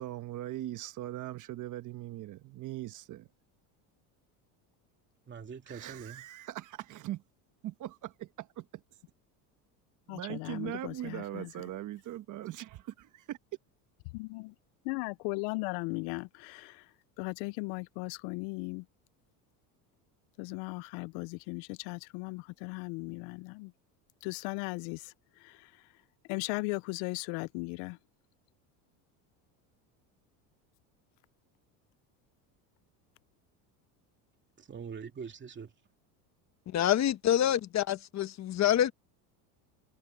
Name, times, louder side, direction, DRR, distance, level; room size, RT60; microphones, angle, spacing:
voice 1, 0.0-3.3 5.7-7.2 7.6-8.8 10.1-13.4, right 13 dB, 50° right, 1.2 m, -40 dB
voice 2, 5.3-6.3 34.6-35.7, right 6 dB, 25° right, 2.7 m, -43 dB
voice 3, 10.1-11.5 14.1-14.5 14.8-16.9 17.2-18.8 20.4-23.7 24.2-25.1 25.4-25.7 26.3-28.0, left 27 dB, 75° left, 0.6 m, -37 dB
voice 4, 36.7-38.9, left 11 dB, 40° left, 1.2 m, -27 dB
supercardioid pair, 120°, 41 cm